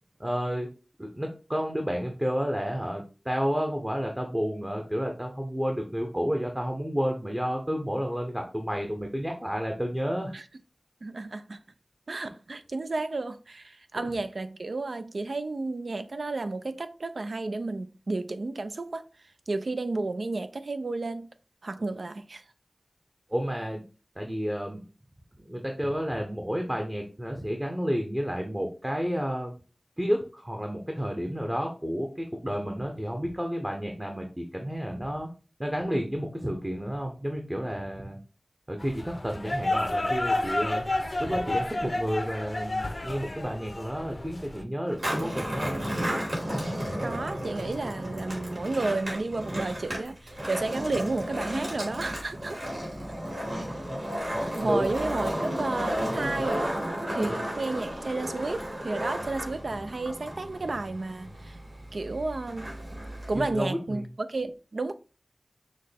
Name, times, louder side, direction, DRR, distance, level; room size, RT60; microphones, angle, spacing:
voice 1, 0.2-0.7 1.0-10.3 23.3-23.8 24.2-24.8 25.4-29.5 30.0-35.3 35.6-38.2 38.7-45.8 54.6-54.9 57.2-57.4 63.3-64.1, equal, 20° right, 0.8 m, -31 dB
voice 2, 11.0-11.6 12.1-19.0 19.5-21.3 21.6-22.4 47.0-52.6 54.2-61.6 61.9-62.7 63.3-64.9, right 3 dB, 80° right, 0.4 m, -32 dB
sound 1, 38.8-44.6, left 2 dB, 45° left, 0.5 m, -30 dB
Skateboard, 44.9-63.5, equal, 50° right, 2.6 m, -33 dB
6.3 x 2.2 x 3.3 m
wide cardioid pair, 45°, 0 cm